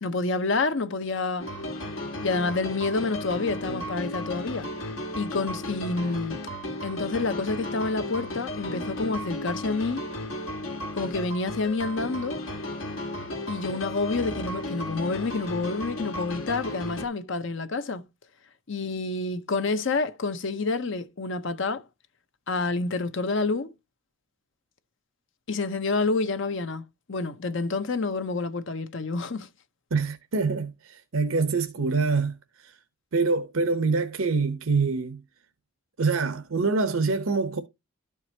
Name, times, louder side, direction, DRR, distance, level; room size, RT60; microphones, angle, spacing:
voice 1, 0.0-1.5 2.2-4.7 5.2-6.4 6.8-10.0 11.0-12.4 13.5-18.0 18.7-21.8 22.5-23.7 25.5-29.5, left 3 dB, 60° left, 0.7 m, -28 dB
sound 1, 1.4-17.1, left 1 dB, 75° left, 1.5 m, -34 dB
voice 2, 29.9-32.4 32.6-32.7 33.1-35.2 36.0-37.6, right 4 dB, 75° right, 0.8 m, -25 dB
12.5 x 4.7 x 2.8 m
head